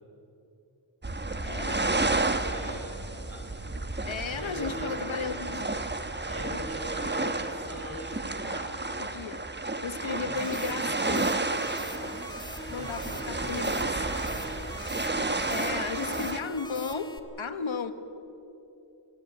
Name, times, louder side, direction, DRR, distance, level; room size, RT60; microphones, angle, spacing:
sound 1, 1.0-16.4, right 2 dB, 20° right, 1.2 m, -31 dB
voice 1, 1.4-1.9 4.1-5.7 6.5-6.7 9.0-9.4 9.8-11.4 12.7-13.9 15.5-17.9, left 5 dB, 70° left, 9 dB, 1.5 m, -35 dB
voice 2, 2.2-3.9 4.3-5.1 6.2-8.9 10.0-10.5 12.0-12.4 12.6-14.7, equal, 40° right, -1 dB, 5.0 m, -42 dB
sound 2, 10.4-17.2, left 1 dB, 10° left, 1.6 m, -43 dB
24.0 x 16.0 x 8.7 m, 2.9 s
wide cardioid pair, 80°, 48 cm